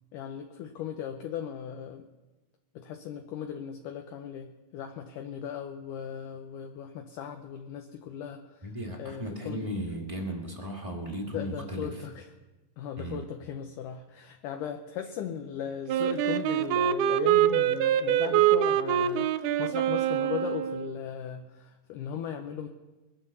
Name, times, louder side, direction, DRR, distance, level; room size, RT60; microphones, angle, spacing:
voice 1, 0.1-2.1 2.8-8.7 9.0-9.7 11.3-12.3 12.8-22.7, left 8 dB, 75° left, 5 dB, 2.2 m, -37 dB
voice 2, 8.6-12.0 13.0-13.2, equal, 20° right, 0 dB, 0.8 m, -36 dB
Wind instrument woodwind instrument, 15.9-21.0, right 11 dB, 80° right, 2.0 m, -25 dB
22.0 x 8.2 x 6.7 m, 1.2 s
omnidirectional pair, 4.0 m